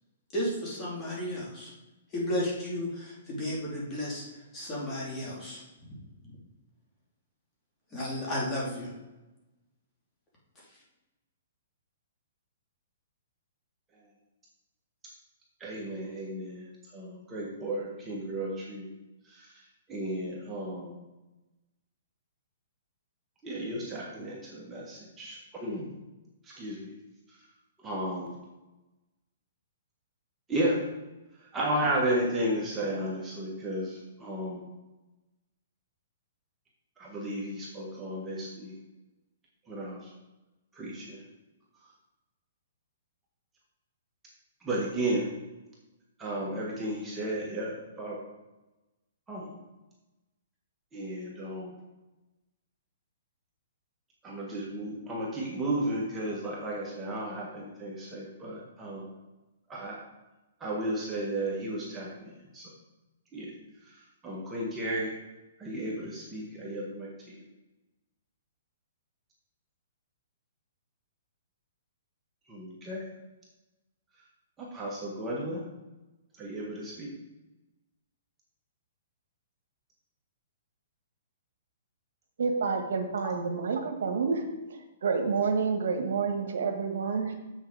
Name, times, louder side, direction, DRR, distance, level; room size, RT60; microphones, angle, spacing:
voice 1, 0.3-1.7 2.1-5.6 7.9-8.9 10.5-10.8, left 1 dB, 20° left, -5 dB, 3.0 m, -33 dB
voice 2, 15.6-16.6 16.9-18.9 19.2-19.6 19.9-21.0 23.4-25.9 26.4-26.9 27.8-28.3 30.5-30.8 31.4-34.6 37.0-38.7 39.7-40.1 40.7-41.2 44.6-45.2 46.2-48.2 49.3-49.6 50.9-51.7 54.2-59.1 59.7-59.9 60.6-62.7 63.3-63.5 63.8-65.2 65.6-67.1 67.4-67.5 72.5-73.1 74.6-75.6 76.4-77.1, right 1 dB, 15° right, -5 dB, 1.6 m, -33 dB
voice 3, 82.4-84.4 84.7-87.3, right 5 dB, 75° right, 5 dB, 1.4 m, -29 dB
7.5 x 6.6 x 4.8 m, 1.1 s
hypercardioid pair, 155°, 0 cm